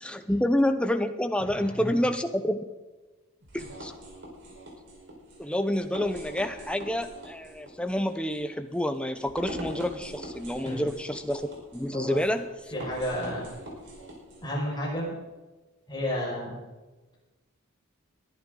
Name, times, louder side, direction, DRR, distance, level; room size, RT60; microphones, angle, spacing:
voice 1, 0.0-2.6 3.5-3.9 5.4-12.7, left 1 dB, 5° left, 8 dB, 0.9 m, -28 dB
sound 1, 3.4-14.4, right 1 dB, 55° right, 4.8 m, -43 dB
voice 2, 12.7-13.5 14.4-15.2 15.9-16.6, equal, 20° left, -4 dB, 5.7 m, -31 dB
20.5 x 11.0 x 4.0 m, 1.2 s
head